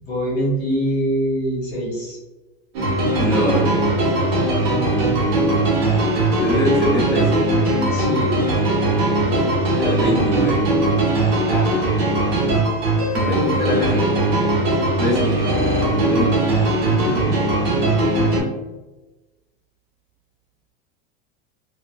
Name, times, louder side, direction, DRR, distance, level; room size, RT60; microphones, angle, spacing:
voice 1, 0.0-2.2 4.1-4.5 7.9-8.3 11.4-11.7 16.8-17.3, equal, 30° left, -5 dB, 1.5 m, -25 dB
sound 1, 2.7-18.4, right 2 dB, 75° right, 1.2 m, -19 dB
voice 2, 3.2-4.4 6.3-7.6 9.2-9.5 9.8-10.6 13.1-14.5 15.0-15.6 15.9-16.4, equal, ahead, -13 dB, 0.9 m, -24 dB
2.6 x 2.5 x 2.3 m, 1.1 s
supercardioid pair, 150°, 31 cm